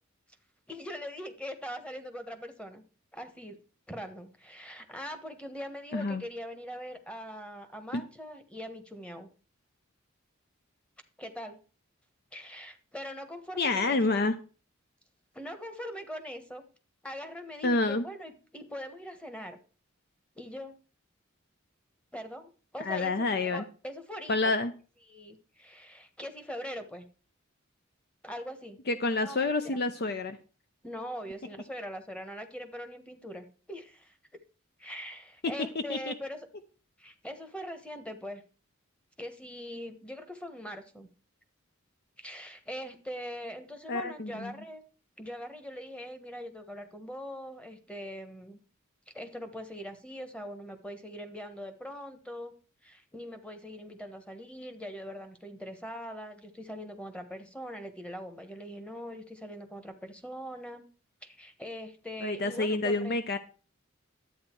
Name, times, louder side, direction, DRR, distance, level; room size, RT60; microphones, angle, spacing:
voice 1, 0.7-2.8 3.1-3.6 3.9-9.3 11.2-11.6 12.3-14.2 15.3-16.6 17.0-19.6 20.3-20.8 22.1-24.5 25.1-27.1 28.2-28.8 29.2-29.8 30.8-34.2 34.8-36.5 37.0-38.4 39.2-41.1 42.2-44.8 45.2-48.6 49.1-52.5 52.8-60.9 61.2-63.2, equal, 5° left, 8 dB, 1.2 m, -42 dB
voice 2, 5.9-6.2 7.9-8.0 13.6-14.4 17.6-18.1 22.8-23.6 24.3-24.7 28.9-30.4 35.7-36.1 43.9-44.5 62.2-63.4, left 3 dB, 50° left, 10 dB, 0.7 m, -28 dB
11.5 x 8.8 x 4.5 m, 0.37 s
head